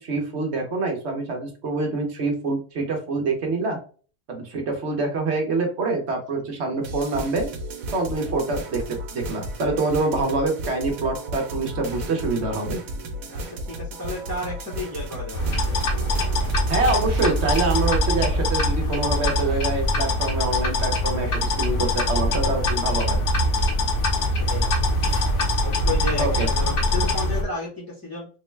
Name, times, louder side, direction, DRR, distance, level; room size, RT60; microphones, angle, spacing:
voice 1, 0.0-3.8 4.3-7.5 7.9-12.8 16.7-23.2 26.2-26.5, right 3 dB, 60° right, 2 dB, 1.0 m, -26 dB
sound 1, 6.8-17.9, right 1 dB, 90° right, 1.2 m, -34 dB
voice 2, 13.3-15.5 24.1-24.8 25.1-28.3, left 2 dB, 15° left, -5 dB, 0.7 m, -33 dB
sound 2, 15.3-27.4, left 1 dB, 65° left, 1.2 m, -23 dB
3.7 x 2.2 x 3.1 m, 0.39 s
omnidirectional pair, 1.4 m